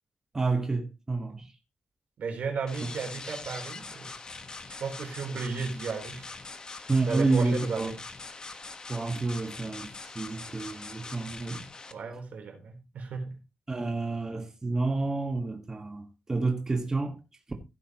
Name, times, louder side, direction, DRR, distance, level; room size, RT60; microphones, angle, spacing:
voice 1, 0.3-1.5 6.9-8.0 8.9-11.6 13.7-17.2, right 3 dB, 20° right, 1.6 m, -29 dB
voice 2, 2.2-4.1 4.8-6.3 7.0-7.9 11.9-13.3, right 5 dB, 85° right, 3.8 m, -34 dB
sound 1, 2.7-11.9, left 3 dB, 30° left, 1.3 m, -43 dB
15.5 x 8.5 x 3.0 m
wide cardioid pair, 165°, 3 cm